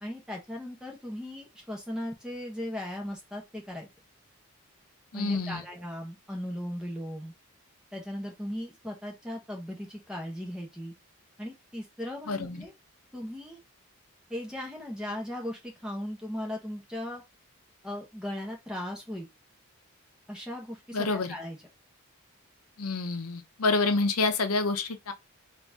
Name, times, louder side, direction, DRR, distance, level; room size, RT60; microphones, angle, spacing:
voice 1, 0.0-3.9 5.1-7.3 7.9-10.9 11.4-12.7 13.1-13.6 14.3-17.2 17.8-19.3 20.3-21.6, left 1 dB, 5° right, 1.0 m, -37 dB
voice 2, 5.1-5.6 12.3-12.6 20.9-21.3 22.8-25.1, left 3 dB, 80° left, 0.7 m, -28 dB
4.0 x 2.6 x 3.5 m
head